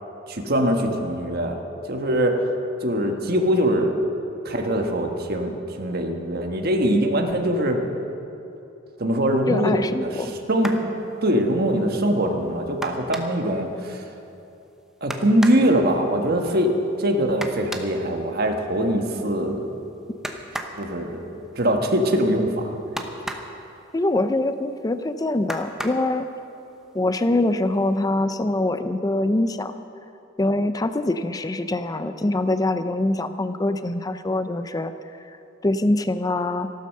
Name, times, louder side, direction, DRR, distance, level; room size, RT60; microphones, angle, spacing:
voice 1, 0.3-1.6 1.9-2.4 2.8-3.9 4.4-7.8 9.0-10.8 11.2-14.0 15.0-16.7 17.0-19.7 20.8-22.7, equal, 50° right, 3 dB, 1.5 m, -22 dB
voice 2, 9.5-10.3 23.9-26.3 26.9-29.7 30.4-34.9 35.3-35.4 35.6-36.7, left 2 dB, 20° left, 10 dB, 0.4 m, -24 dB
sound 1, 10.5-10.9 12.8-13.5 15.1-15.7 17.4-18.0 20.2-20.8 23.0-23.6 25.5-26.1 27.2-27.3 27.7-28.0, right 1 dB, 5° right, 0.9 m, -33 dB
14.0 x 12.0 x 6.6 m, 2.8 s
head